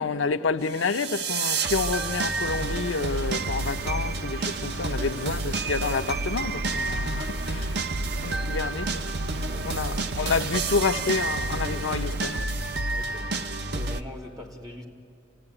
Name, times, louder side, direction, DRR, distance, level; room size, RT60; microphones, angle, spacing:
voice 1, 0.0-7.8 8.2-8.9 9.3-12.5, left 4 dB, 80° left, 0.6 m, -29 dB
sound 1, 0.7-14.0, right 3 dB, 55° right, 0.8 m, -29 dB
Water, 2.4-12.4, right 4 dB, 90° right, 0.6 m, -40 dB
voice 2, 9.5-10.1 12.9-13.4 13.7-14.8, left 2 dB, 20° right, 2.6 m, -42 dB
30.0 x 15.5 x 9.9 m
head